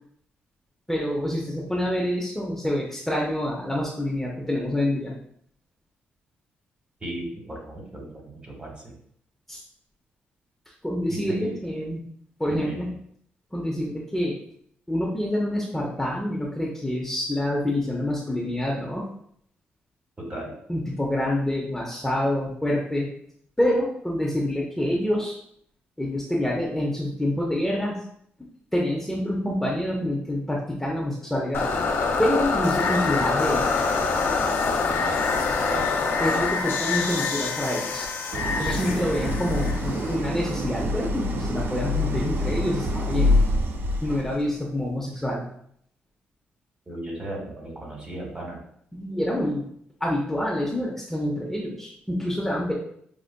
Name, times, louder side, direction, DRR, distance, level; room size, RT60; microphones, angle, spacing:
voice 1, 0.9-5.1 9.5-9.6 10.8-12.0 12.4-12.9 13.5-14.4 14.9-19.1 20.7-23.1 23.6-25.3 26.0-28.0 28.4-31.7 32.2-33.6 36.2-38.1 38.6-43.4 44.0-45.4 48.9-49.7 50.0-52.7, left 1 dB, 5° left, -3 dB, 0.7 m, -27 dB
voice 2, 7.0-9.0 11.1-11.6 12.5-12.9 20.2-20.5 35.6-35.9 38.7-39.3 46.9-48.6, right 1 dB, 25° right, -1 dB, 1.5 m, -36 dB
sound 1, 31.5-40.6, left 4 dB, 75° left, 0.5 m, -25 dB
Idling, 38.3-44.4, left 1 dB, 60° right, 0.4 m, -26 dB
5.1 x 2.4 x 2.2 m, 0.68 s
cardioid pair, 65°, 4 cm